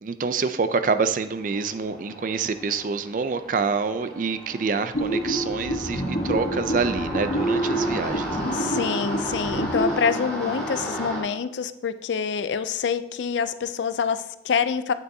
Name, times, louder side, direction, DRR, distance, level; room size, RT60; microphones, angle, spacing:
voice 1, 0.0-8.4, right 4 dB, 45° right, 10 dB, 0.4 m, -26 dB
sound 1, 1.3-11.2, equal, 5° left, 2.7 m, -34 dB
sound 2, 4.9-10.0, right 1 dB, 55° left, 1.1 m, -28 dB
Bass guitar, 5.9-9.8, right 1 dB, 20° left, 0.8 m, -41 dB
voice 2, 8.5-14.9, left 6 dB, 75° left, 13 dB, 0.4 m, -26 dB
8.9 x 6.6 x 2.7 m, 0.86 s
head